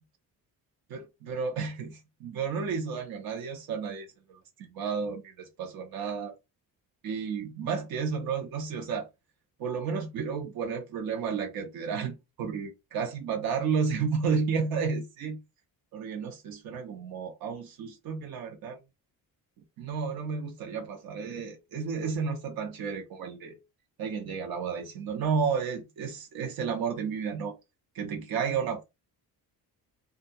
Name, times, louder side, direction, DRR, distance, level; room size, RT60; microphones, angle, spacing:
voice 1, 0.9-6.3 7.0-9.1 9.6-15.4 15.9-18.8 19.8-23.6 24.0-27.5 27.9-28.8, right 6 dB, 65° right, 0.8 m, -32 dB
2.5 x 2.3 x 2.6 m
cardioid pair, 130°, 38 cm